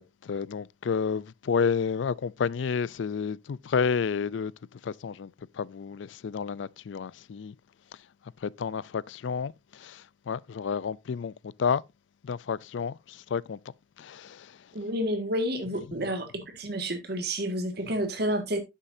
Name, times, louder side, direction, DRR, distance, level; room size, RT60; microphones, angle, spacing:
voice 1, 0.0-4.5 4.8-5.3 5.6-7.5 8.4-9.5 9.8-10.0 10.3-11.3 11.6-11.8 12.2-13.0 13.3-13.6 14.0-14.5, left 6 dB, 75° left, 0.4 m, -30 dB
voice 2, 14.7-16.3 16.5-18.6, equal, 55° right, 1.8 m, -29 dB
10.5 x 7.4 x 2.6 m
head